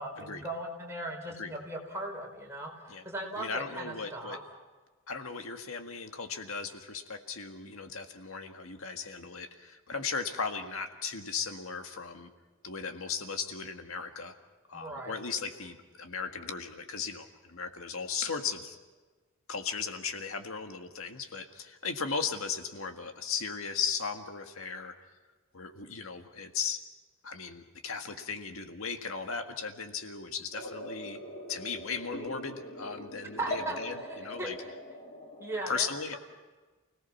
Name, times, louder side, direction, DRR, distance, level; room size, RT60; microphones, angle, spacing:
voice 1, 0.0-4.4 14.7-15.2 33.4-34.1 34.4-34.7 35.4-35.8, right 1 dB, 15° right, -1 dB, 4.9 m, -38 dB
voice 2, 3.4-4.4 5.1-12.3 12.6-14.3 14.7-18.8 19.5-24.9 25.5-26.8 27.2-31.2 31.5-34.6 35.7-36.2, left 5 dB, 75° left, 6 dB, 1.8 m, -37 dB
sound 1, 30.5-35.6, left 1 dB, 40° left, 5.3 m, -41 dB
29.5 x 18.5 x 5.9 m, 1.3 s
head